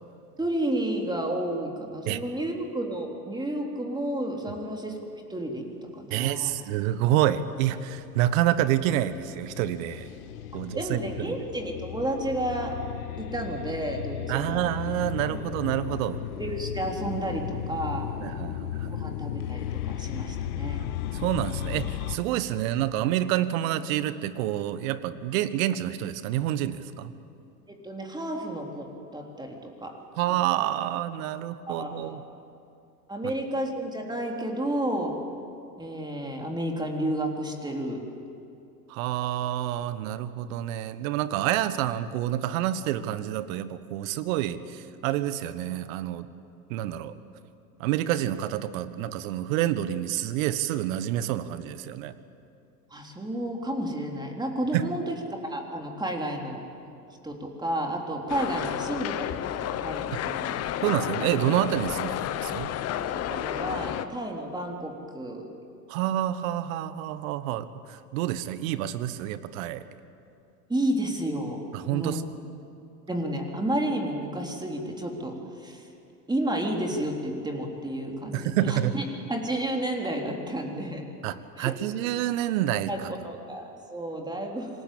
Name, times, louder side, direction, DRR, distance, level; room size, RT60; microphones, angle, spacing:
voice 1, 0.4-5.0 5.3-5.7 5.9-6.6 10.8-12.8 13.2-14.7 15.3-15.5 16.4-18.1 18.9-20.9 27.7-30.0 30.3-30.4 31.7-32.3 33.1-35.2 35.8-38.0 52.9-55.1 55.4-56.6 57.2-60.6 63.0-65.5 70.7-71.6 71.9-72.2 73.1-75.9 76.3-81.1 81.6-81.7 82.9-84.7, right 1 dB, 10° right, 1 dB, 3.5 m, -31 dB
voice 2, 6.1-10.1 10.5-11.3 14.3-16.2 18.2-19.0 21.1-27.1 30.2-32.2 38.9-46.3 46.7-47.1 47.8-52.1 54.7-54.8 60.8-62.7 65.9-69.8 71.7-72.2 78.3-78.9 81.2-83.1, right 12 dB, 55° right, 14 dB, 1.4 m, -28 dB
sound 1, 7.4-22.2, left 11 dB, 60° left, 1.6 m, -35 dB
sound 2, 58.3-64.1, left 11 dB, 30° left, 1.1 m, -31 dB
26.5 x 19.5 x 8.5 m, 2.6 s
hypercardioid pair, 95°, 48 cm